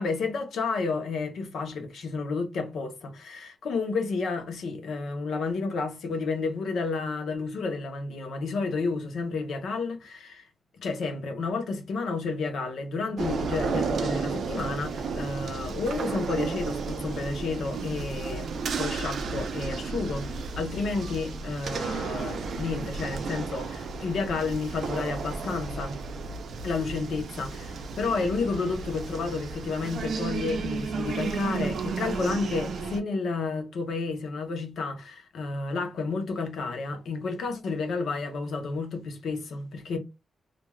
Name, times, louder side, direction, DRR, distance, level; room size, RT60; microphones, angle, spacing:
voice 1, 0.0-10.5 10.8-26.0 26.6-40.0, left 4 dB, 80° left, 0.8 m, -31 dB
sound 1, 13.2-33.0, right 4 dB, 70° right, 0.5 m, -33 dB
2.5 x 2.3 x 3.0 m
wide cardioid pair, 155°, 0 cm